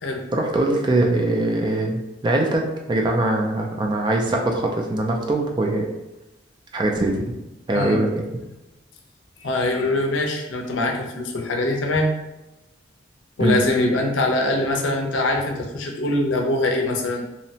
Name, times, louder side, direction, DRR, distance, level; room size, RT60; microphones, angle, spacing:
voice 1, 0.3-5.9 6.7-7.3 7.7-8.4 13.4-13.6, right 2 dB, 25° right, 1 dB, 0.3 m, -22 dB
voice 2, 9.4-12.1 13.4-17.3, left 2 dB, 80° left, 1 dB, 0.5 m, -23 dB
2.7 x 2.1 x 2.7 m, 0.97 s
head